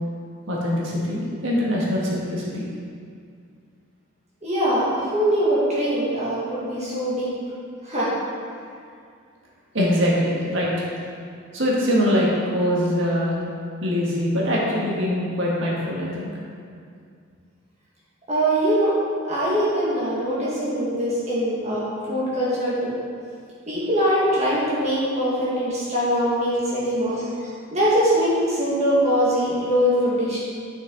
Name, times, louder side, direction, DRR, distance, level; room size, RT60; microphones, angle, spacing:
voice 1, 0.5-2.7 9.7-11.0 11.5-13.3 13.8-16.3, equal, 65° right, -5 dB, 1.6 m, -23 dB
voice 2, 4.4-7.3 7.8-8.1 18.3-18.9 19.3-22.9 23.7-27.1 27.7-30.4, equal, 35° right, -8 dB, 1.8 m, -22 dB
9.7 x 5.9 x 3.9 m, 2.3 s
head